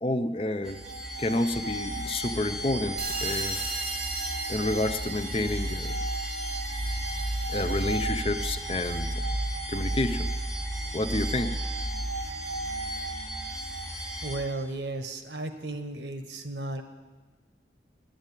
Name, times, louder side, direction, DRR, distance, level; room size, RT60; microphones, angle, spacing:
voice 1, 0.0-0.8 1.2-3.6 4.5-5.9 7.5-9.3 9.7-10.3 10.9-11.6, left 2 dB, 30° left, 9 dB, 0.5 m, -29 dB
sound 1, 0.6-14.3, right 1 dB, ahead, 4.0 m, -33 dB
sound 2, 3.0-8.2, right 3 dB, 30° right, 3.1 m, -37 dB
voice 2, 14.2-16.8, right 2 dB, 80° right, 7 dB, 1.2 m, -34 dB
9.6 x 9.0 x 9.8 m, 1.4 s
head